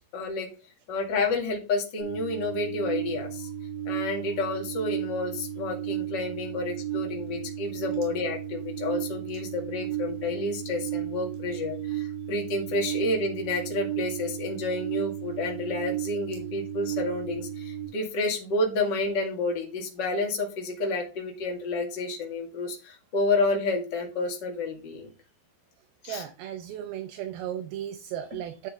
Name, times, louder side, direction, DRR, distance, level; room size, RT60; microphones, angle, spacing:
voice 1, 0.1-0.5 0.9-3.5 3.9-25.1 26.0-26.2, left 2 dB, 35° left, 0 dB, 2.1 m, -30 dB
sound 1, 2.0-17.9, right 11 dB, 20° right, 6.1 m, -34 dB
voice 2, 26.0-28.7, right 10 dB, 75° right, 7 dB, 2.6 m, -35 dB
9.8 x 7.0 x 3.7 m, 0.33 s
omnidirectional pair, 4.6 m